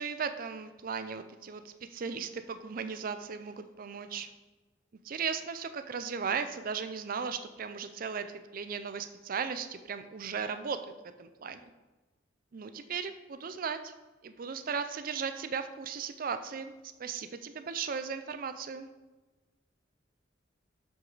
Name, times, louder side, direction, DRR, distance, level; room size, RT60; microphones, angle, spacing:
voice 1, 0.0-4.3 5.0-8.3 8.5-11.6 12.5-13.9 14.2-16.7 17.0-18.9, right 6 dB, 45° right, 10 dB, 0.5 m, -36 dB
7.5 x 6.2 x 3.9 m, 1.2 s
head